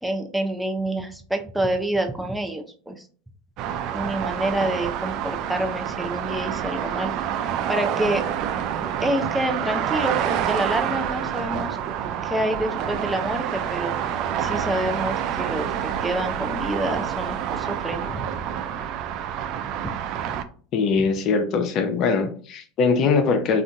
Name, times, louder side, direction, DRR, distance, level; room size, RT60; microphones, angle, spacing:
voice 1, 0.0-3.1 3.9-7.1 7.7-8.2 9.0-11.8 12.2-13.9 14.4-18.2 20.3-20.4, right 1 dB, 5° right, 4 dB, 0.5 m, -27 dB
sound 1, 3.6-20.4, right 9 dB, 55° right, 0.3 m, -27 dB
voice 2, 20.7-23.6, left 4 dB, 50° left, 7 dB, 0.6 m, -21 dB
3.7 x 2.5 x 2.3 m, 0.43 s
hypercardioid pair, 80°, 0 cm